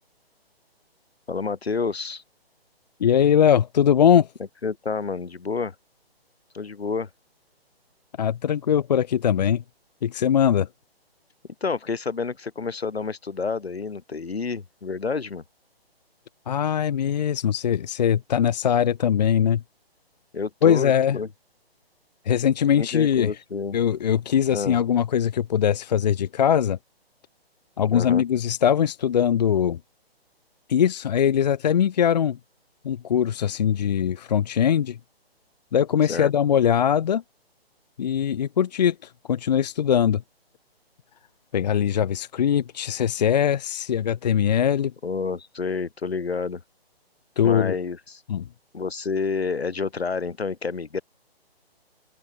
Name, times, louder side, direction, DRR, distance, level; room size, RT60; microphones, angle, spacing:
voice 1, 1.3-2.2 4.6-5.7 6.5-7.1 11.6-15.4 20.3-21.3 22.7-23.8 24.5-24.8 27.9-28.2 36.1-36.3 45.0-46.6 47.4-48.2 48.7-51.0, left 4 dB, 75° left, 4.6 m, -29 dB
voice 2, 3.0-4.3 8.2-9.6 10.0-10.7 16.5-19.6 20.6-21.2 22.3-23.3 23.7-26.8 27.8-29.8 30.7-32.4 32.8-35.0 35.7-37.2 38.0-40.2 41.5-44.9 47.4-47.8 48.3-48.5, left 9 dB, 45° left, 0.9 m, -21 dB
open air
hypercardioid pair, 150°, 31 cm